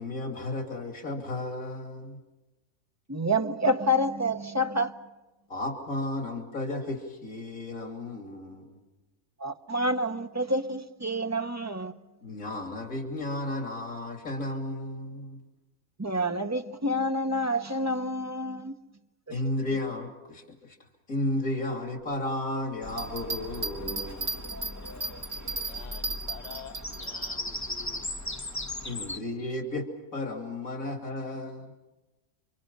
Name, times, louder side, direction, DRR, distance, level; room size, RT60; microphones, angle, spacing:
voice 1, 0.0-2.2 5.5-8.8 12.2-15.4 19.3-20.8 21.1-24.4 28.8-29.9 30.1-31.7, left 1 dB, 85° left, 3.3 m, -33 dB
voice 2, 3.1-5.0 9.4-11.9 16.0-18.7 19.3-19.4, equal, 15° right, 1.0 m, -28 dB
Bird vocalization bird call bird song, 22.8-29.2, left 1 dB, 15° left, 1.3 m, -38 dB
Bell, 22.9-27.3 27.8-27.9, right 3 dB, 70° right, 2.4 m, -35 dB
voice 3, 25.7-28.1, left 7 dB, 35° left, 1.0 m, -47 dB
29.0 x 26.0 x 5.6 m
omnidirectional pair, 1.4 m